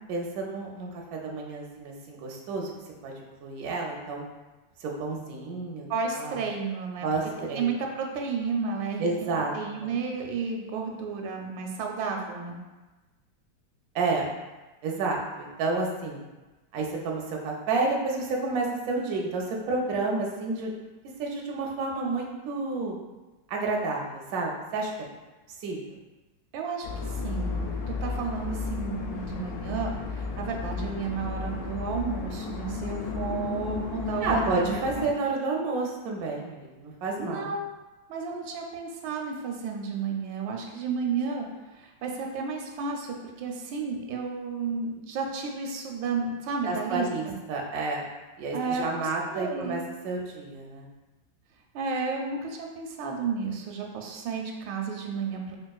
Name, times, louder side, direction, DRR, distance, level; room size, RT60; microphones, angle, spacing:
voice 1, 0.1-2.7 3.0-3.1 3.4-4.3 4.8-5.9 6.1-6.4 7.0-7.7 9.0-9.5 9.8-9.9 13.9-14.3 14.8-16.2 16.7-20.7 21.2-23.0 23.5-24.9 25.6-25.8 34.2-37.5 46.7-48.1 48.4-50.9, right 3 dB, 70° right, -1 dB, 0.9 m, -30 dB
voice 2, 5.9-7.1 7.5-12.6 26.5-35.0 37.2-37.6 38.1-41.5 41.7-47.3 48.5-49.8 51.7-55.6, right 5 dB, 90° right, 1 dB, 1.3 m, -32 dB
sound 1, 26.8-35.1, left 5 dB, 75° left, 0.8 m, -33 dB
4.4 x 2.5 x 2.3 m, 1.1 s
omnidirectional pair, 2.0 m